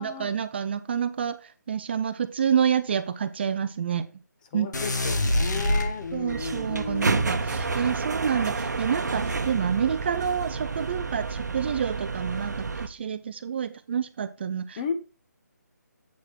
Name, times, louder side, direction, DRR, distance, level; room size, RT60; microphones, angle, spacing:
voice 1, 0.0-4.1 4.5-4.7 6.1-14.8, right 8 dB, 35° right, 0.5 m, -28 dB
voice 2, 4.5-7.4 14.8-14.9, left 6 dB, 25° left, 1.0 m, -34 dB
sound 1, 4.7-6.5, left 1 dB, 75° left, 1.9 m, -25 dB
sound 2, 6.3-12.9, right 4 dB, 70° right, 0.9 m, -30 dB
8.2 x 4.8 x 4.5 m
figure-of-eight pair, 155°, 10 cm